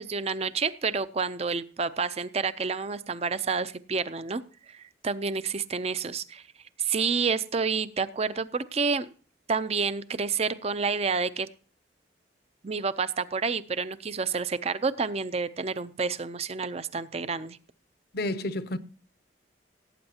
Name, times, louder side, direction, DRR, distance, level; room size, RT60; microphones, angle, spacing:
voice 1, 0.0-6.4 6.8-9.1 9.5-11.5 12.6-17.6, right 5 dB, 35° right, 0.5 m, -29 dB
voice 2, 18.1-18.8, left 1 dB, 55° left, 0.7 m, -30 dB
17.5 x 8.7 x 2.9 m
head